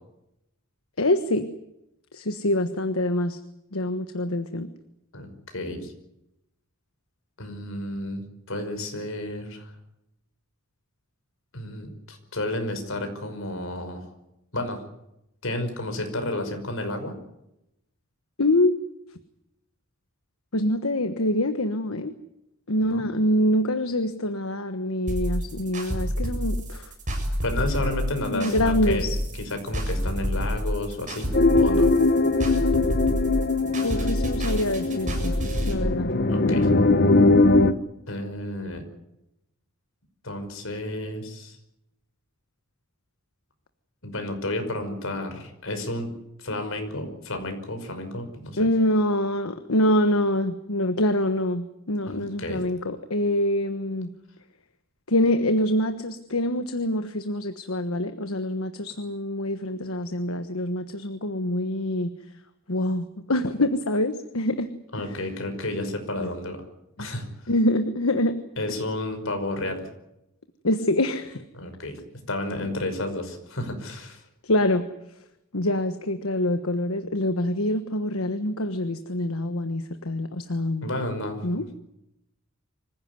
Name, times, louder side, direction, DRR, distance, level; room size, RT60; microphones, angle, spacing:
voice 1, 1.0-1.5 2.1-3.4 3.7-4.7 18.4-18.7 20.5-22.1 22.7-26.9 28.2-29.2 32.4-33.0 33.8-35.3 35.7-36.1 48.6-54.1 55.1-62.1 62.7-64.7 65.0-65.1 67.0-67.1 67.5-68.4 70.6-71.4 74.4-74.9 75.5-80.9 81.4-81.7, left 1 dB, 85° left, 9 dB, 1.3 m, -25 dB
voice 2, 5.1-5.9 7.4-9.7 11.5-14.1 14.5-14.8 15.4-17.1 22.8-23.0 27.4-31.9 35.8-36.0 36.3-36.7 38.1-38.8 40.2-41.6 44.0-46.1 46.4-48.7 52.0-52.6 64.9-66.6 67.0-67.3 68.6-69.9 71.5-72.0 72.3-74.2 80.8-81.8, left 1 dB, 65° left, 6 dB, 5.6 m, -31 dB
sound 1, 25.1-35.7, equal, 35° right, 7.9 m, -28 dB
sound 2, 31.3-37.7, left 2 dB, 50° left, 1.2 m, -21 dB
25.5 x 16.0 x 9.6 m, 0.84 s
head